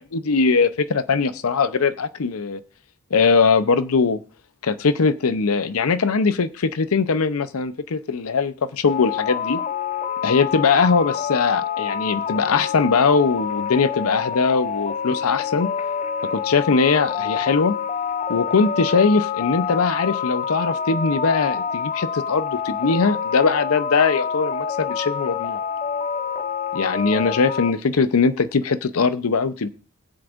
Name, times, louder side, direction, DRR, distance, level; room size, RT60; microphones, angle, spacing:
voice 1, 0.1-2.6 3.1-4.2 4.6-9.6 10.2-15.7 16.2-17.7 18.3-25.6 26.7-29.7, left 4 dB, 85° left, 13 dB, 0.6 m, -21 dB
sound 1, 8.8-27.7, left 7 dB, 30° left, 0.4 m, -27 dB
21.0 x 7.7 x 2.5 m, 0.37 s
head